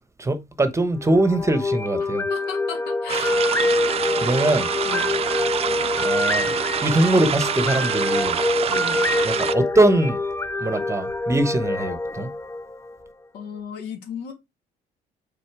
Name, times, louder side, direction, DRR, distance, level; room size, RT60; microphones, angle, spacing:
voice 1, 0.2-2.3 3.9-4.7 6.0-6.5 6.8-8.4 9.2-10.2 10.6-12.3, right 2 dB, 15° right, 1.0 m, -22 dB
sound 1, 1.0-13.1, left 2 dB, 15° left, 0.4 m, -25 dB
voice 2, 2.3-3.4 4.8-5.1 8.7-9.0 13.3-14.3, left 6 dB, 80° left, 2.3 m, -35 dB
sound 2, 3.1-9.5, right 8 dB, 35° right, 0.5 m, -26 dB
6.4 x 4.0 x 4.7 m
cardioid pair, 110°, 17 cm